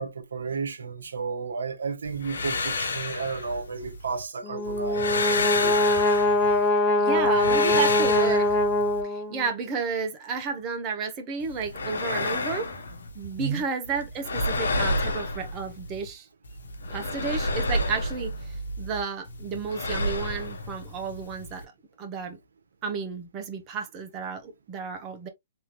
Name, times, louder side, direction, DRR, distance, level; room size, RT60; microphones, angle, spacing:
voice 1, 0.0-5.8 13.4-13.6, right 5 dB, 80° right, 1.1 m, -33 dB
sound 1, 2.1-4.2 4.7-6.7 7.1-9.0 11.4-13.6 13.9-16.1 16.4-19.0 19.3-21.6, left 2 dB, 80° left, 1.0 m, -30 dB
Brass instrument, 4.4-9.5, left 1 dB, 25° left, 1.1 m, -23 dB
voice 2, 7.0-8.6 9.0-12.7 13.1-16.3 16.9-21.7 22.0-22.4 22.8-25.3, right 5 dB, 25° right, 1.0 m, -32 dB
3.5 x 2.8 x 3.0 m
hypercardioid pair, 145°, 0 cm